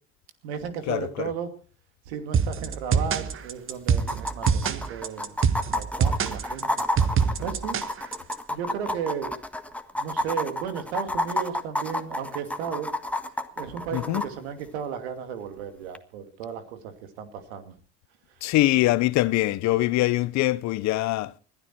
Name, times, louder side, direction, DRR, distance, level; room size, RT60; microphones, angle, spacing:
voice 1, 0.4-1.5 2.1-6.9 7.4-7.9 8.5-9.3 10.0-12.9 13.6-17.7 18.3-18.4, right 7 dB, 85° right, 2.6 m, -34 dB
sound 1, 2.3-8.3, right 6 dB, 40° right, 1.5 m, -24 dB
sound 2, 2.9-3.0 3.3-3.4 4.0-14.3 15.9-16.0, left 1 dB, 5° left, 1.6 m, -30 dB
voice 2, 13.9-14.2 18.4-21.4, left 17 dB, 60° left, 0.9 m, -23 dB
20.5 x 12.5 x 4.5 m
supercardioid pair, 80°, 31 cm